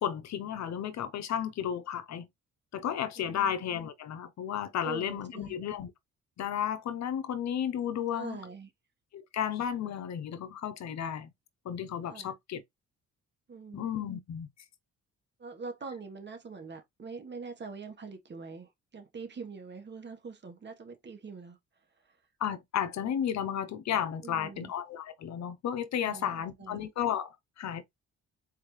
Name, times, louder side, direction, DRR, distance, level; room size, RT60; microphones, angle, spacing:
voice 1, 0.0-2.3 2.7-5.9 6.4-8.4 9.1-11.3 11.6-12.6 13.7-14.5 22.4-27.8, left 9 dB, 65° left, 0.9 m, -33 dB
voice 2, 3.2-3.6 4.8-5.5 8.1-8.7 12.0-12.3 13.5-13.9 15.4-21.6 22.0-22.2 24.2-24.7 26.0-26.8, right 4 dB, 35° right, 1.5 m, -44 dB
4.4 x 3.5 x 3.3 m
cardioid pair, 90°, 30 cm